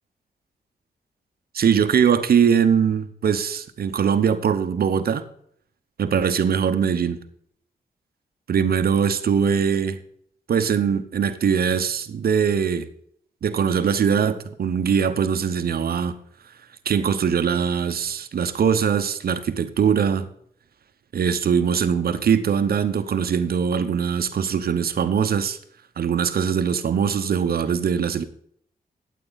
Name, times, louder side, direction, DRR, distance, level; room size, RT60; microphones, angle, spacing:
voice 1, 1.5-5.3 6.0-7.2 8.5-10.0 10.5-12.9 13.4-16.2 16.9-20.3 21.1-25.6 26.0-28.2, right 7 dB, 70° right, 0.9 m, -21 dB
12.5 x 8.4 x 4.0 m
cardioid pair, 85°, 16 cm